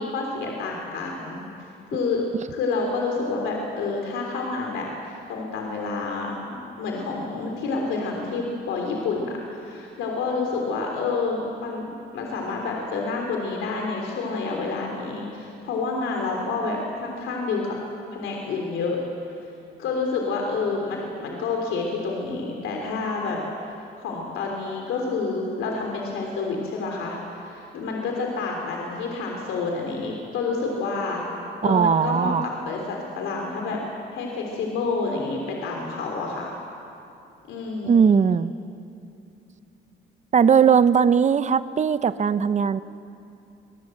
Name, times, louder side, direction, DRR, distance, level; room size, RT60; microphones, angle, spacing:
voice 1, 0.0-1.4 1.9-2.2 2.5-6.4 6.8-17.8 18.1-19.0 19.8-23.4 24.0-31.2 31.6-32.3 32.6-33.8 34.1-36.5 37.5-38.1, left 4 dB, 90° left, 0 dB, 3.4 m, -28 dB
voice 2, 31.6-32.5 37.9-38.5 40.3-42.8, right 7 dB, 35° right, 14 dB, 0.8 m, -19 dB
26.0 x 19.5 x 7.8 m, 2.7 s
cardioid pair, 90°, 20 cm